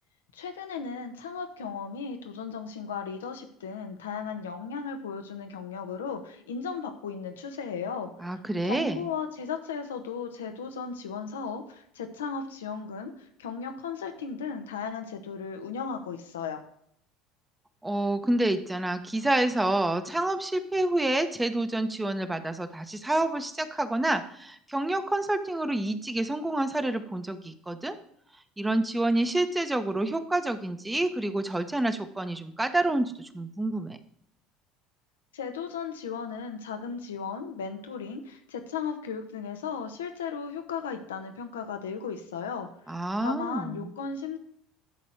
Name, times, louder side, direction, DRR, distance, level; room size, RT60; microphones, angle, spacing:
voice 1, 0.3-8.4 8.6-16.6 35.3-42.7 43.2-44.4, left 6 dB, 80° left, 6 dB, 1.3 m, -36 dB
voice 2, 8.2-9.1 17.8-28.0 28.6-34.0 42.9-43.9, right 1 dB, 10° right, 9 dB, 1.2 m, -28 dB
11.5 x 4.2 x 7.9 m, 0.68 s
hypercardioid pair, 70°, 0 cm